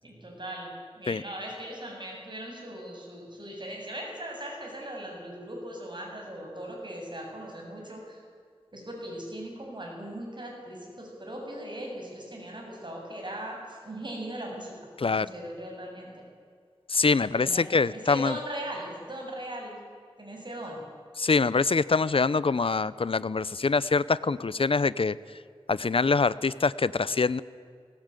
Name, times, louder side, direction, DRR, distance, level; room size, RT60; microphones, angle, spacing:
voice 1, 0.0-8.2 8.7-14.8 15.0-16.2 17.3-17.6 18.1-19.8 20.2-20.8, right 1 dB, 50° right, -1 dB, 7.4 m, -39 dB
voice 2, 16.9-18.4 21.2-25.2 25.7-27.4, left 4 dB, 65° left, 18 dB, 0.7 m, -24 dB
20.0 x 19.0 x 9.2 m, 2.2 s
wide cardioid pair, 60°, 10 cm